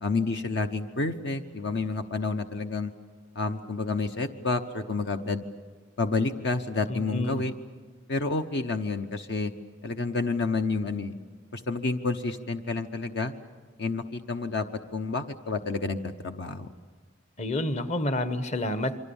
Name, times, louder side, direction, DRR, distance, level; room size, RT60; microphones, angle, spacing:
voice 1, 0.0-2.9 3.3-5.4 6.0-7.5 8.1-9.5 9.8-11.1 11.5-13.3 13.8-14.6 14.9-16.7, left 3 dB, 60° left, 7 dB, 0.9 m, -29 dB
voice 2, 6.9-7.4 17.4-19.0, left 1 dB, 35° left, 10 dB, 1.1 m, -29 dB
28.0 x 24.0 x 7.1 m, 1.4 s
head